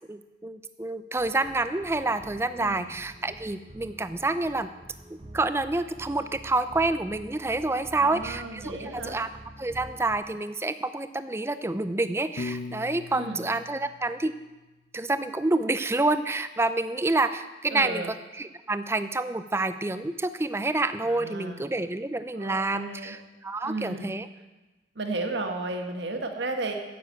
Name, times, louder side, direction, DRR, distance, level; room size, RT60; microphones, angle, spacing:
voice 1, 0.1-4.7 5.3-9.3 9.6-14.3 14.9-24.3, right 2 dB, 15° right, 11 dB, 0.4 m, -28 dB
sound 1, 1.2-10.2, right 1 dB, 30° right, 0.9 m, -47 dB
voice 2, 7.9-9.2 13.1-13.4 17.7-18.1 21.0-21.6 22.3-23.2 23.6-24.1 24.9-26.7, right 2 dB, 70° right, 4 dB, 1.5 m, -34 dB
Piano, 12.4-14.6, left 3 dB, 60° left, 0.6 m, -39 dB
9.8 x 7.0 x 8.0 m, 1.1 s
head